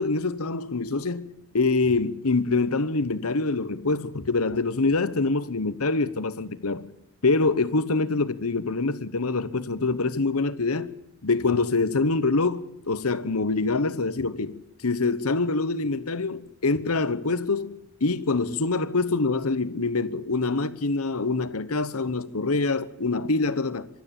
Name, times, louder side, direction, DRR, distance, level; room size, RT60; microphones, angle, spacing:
voice 1, 0.0-6.9 7.2-10.9 11.2-23.9, left 3 dB, 85° left, 1.1 m, -25 dB
25.0 x 12.5 x 9.0 m
head